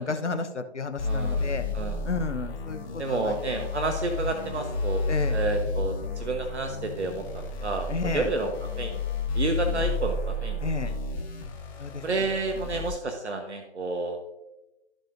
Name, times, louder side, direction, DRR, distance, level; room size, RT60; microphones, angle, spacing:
voice 1, 0.0-1.6 2.0-3.3 5.1-5.4 7.9-8.3 10.6-10.9 11.8-12.3, left 4 dB, 80° left, 8 dB, 1.1 m, -32 dB
sound 1, 1.0-12.9, left 3 dB, 20° left, 1.2 m, -31 dB
voice 2, 1.0-2.0 3.0-9.0 9.3-10.9 12.0-14.2, right 3 dB, 75° right, 4 dB, 1.2 m, -31 dB
14.5 x 5.0 x 2.6 m, 1.0 s
figure-of-eight pair, 145°, 34 cm